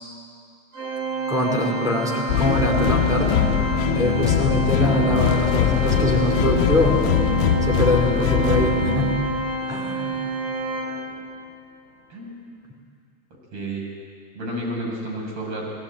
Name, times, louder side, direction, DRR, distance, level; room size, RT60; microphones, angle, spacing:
Organ, 0.7-11.5, right 4 dB, 75° right, 2.9 m, -28 dB
voice 1, 1.3-3.5 3.9-7.0 7.6-9.1 9.7-10.2, left 1 dB, 10° right, -2 dB, 4.9 m, -23 dB
sound 1, 2.3-9.7, left 11 dB, 65° left, 1.1 m, -22 dB
voice 2, 12.1-12.4 13.5-13.9 14.3-15.7, right 1 dB, 40° right, -1 dB, 8.0 m, -31 dB
20.0 x 17.5 x 9.1 m, 2.4 s
supercardioid pair, 120°, 42 cm